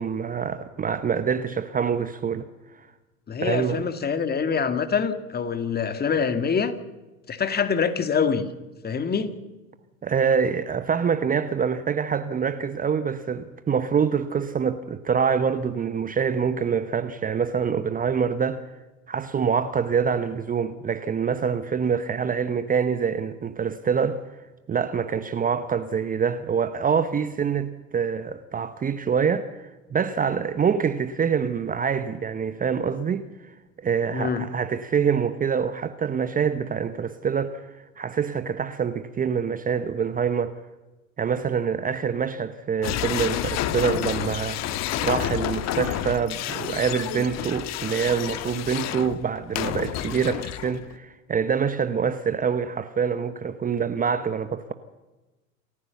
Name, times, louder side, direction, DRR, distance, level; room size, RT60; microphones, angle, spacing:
voice 1, 0.0-2.9 3.4-3.9 10.0-18.6 19.1-24.2 24.7-40.6 41.2-54.7, right 6 dB, 20° right, 1.0 m, -25 dB
voice 2, 3.3-6.8 7.3-8.5 8.8-9.3 34.1-34.6, left 6 dB, 20° left, 2.0 m, -25 dB
sound 1, 42.8-51.0, left 12 dB, 40° left, 1.4 m, -29 dB
28.0 x 14.5 x 7.1 m
hypercardioid pair, 90°, 42 cm